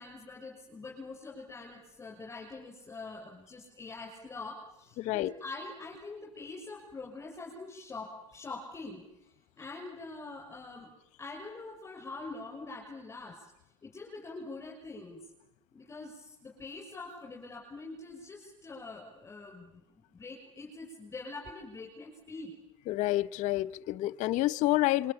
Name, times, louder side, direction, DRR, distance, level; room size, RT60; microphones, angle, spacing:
voice 1, 0.0-9.1 9.6-10.9 11.2-13.4 13.8-15.2 15.7-22.5, left 3 dB, 20° left, 6.2 m, -44 dB
voice 2, 5.0-5.3 22.9-25.1, left 16 dB, 50° left, 0.9 m, -28 dB
26.5 x 23.5 x 8.8 m
supercardioid pair, 105°, 16 cm